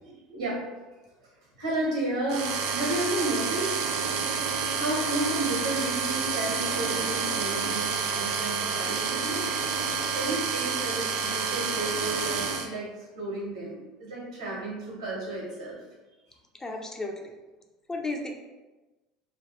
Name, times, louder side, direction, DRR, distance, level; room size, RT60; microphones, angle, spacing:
voice 1, 0.0-0.6 1.6-3.9 4.7-9.4 10.1-15.8, right 1 dB, 85° right, -5 dB, 1.2 m, -32 dB
sound 1, 2.3-12.7, right 5 dB, 65° right, 0.4 m, -29 dB
voice 2, 16.5-17.3 17.9-18.3, left 2 dB, 20° left, 2 dB, 0.5 m, -33 dB
3.0 x 2.3 x 3.0 m, 1.1 s
hypercardioid pair, 75°, 3 cm